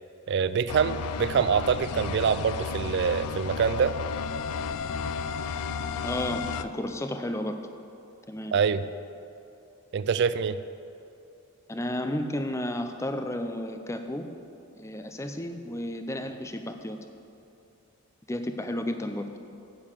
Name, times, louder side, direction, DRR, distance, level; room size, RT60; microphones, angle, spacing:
voice 1, 0.3-3.9 8.5-8.9 9.9-10.6, right 6 dB, 50° right, 13 dB, 0.3 m, -25 dB
sound 1, 0.7-6.6, left 5 dB, 80° left, 0.4 m, -33 dB
voice 2, 6.0-7.6 8.3-8.5 11.7-14.3 14.7-17.0 18.3-19.3, left 1 dB, 15° left, 7 dB, 0.4 m, -32 dB
8.5 x 6.8 x 7.3 m, 2.7 s
head